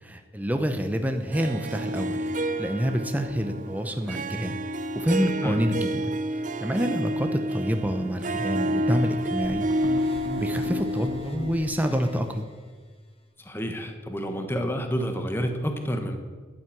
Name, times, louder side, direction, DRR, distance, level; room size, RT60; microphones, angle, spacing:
voice 1, 0.0-2.2 2.6-4.6 4.9-6.0 6.6-10.1 10.4-12.5, equal, 10° right, 6 dB, 0.7 m, -27 dB
Harp, 1.3-12.4, equal, 40° right, 0.6 m, -30 dB
sound 1, 9.4-12.2, equal, 30° left, 1.4 m, -37 dB
voice 2, 13.4-16.2, equal, 10° left, 5 dB, 1.3 m, -29 dB
11.5 x 9.3 x 7.4 m, 1.5 s
head